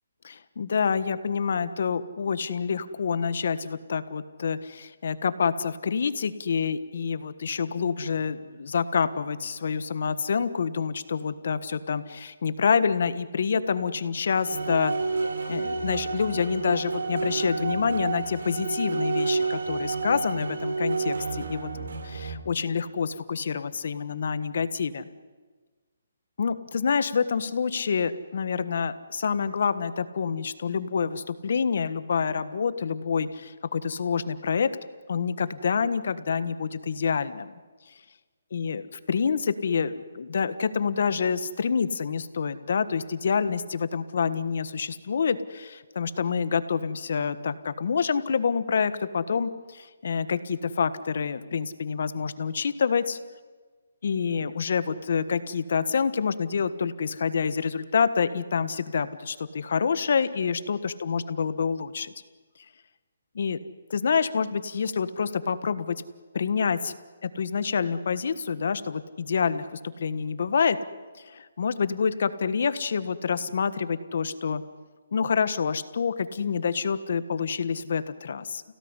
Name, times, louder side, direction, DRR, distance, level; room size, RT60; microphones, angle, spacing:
voice 1, 0.2-14.9 15.5-25.1 26.4-34.7 35.1-37.5 38.5-53.2 54.0-62.1 63.3-63.6 63.9-66.0 66.3-66.9 67.2-70.8 71.1-74.6 75.1-78.6, left 6 dB, 55° left, 13 dB, 1.4 m, -27 dB
sound 1, 14.4-22.4, right 4 dB, 75° right, 4.0 m, -30 dB
29.0 x 17.5 x 9.8 m, 1.4 s
hypercardioid pair, 170°, 0 cm